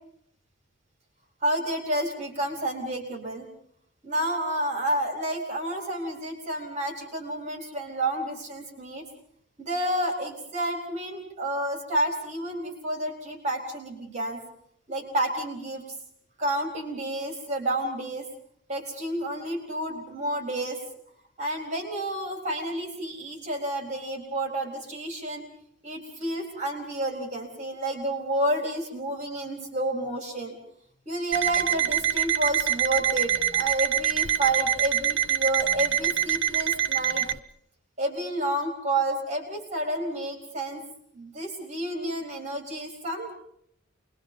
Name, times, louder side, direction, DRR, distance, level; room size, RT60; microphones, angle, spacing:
voice 1, 1.4-3.5 4.0-9.0 9.6-14.4 14.9-15.8 16.4-18.3 18.7-20.8 21.4-25.4 25.8-30.6 31.1-37.3 38.0-40.8 41.1-43.4, right 1 dB, 35° right, 2 dB, 4.2 m, -30 dB
Alarm, 31.3-37.4, right 10 dB, 65° right, 1.0 m, -25 dB
27.5 x 21.5 x 5.4 m, 0.67 s
head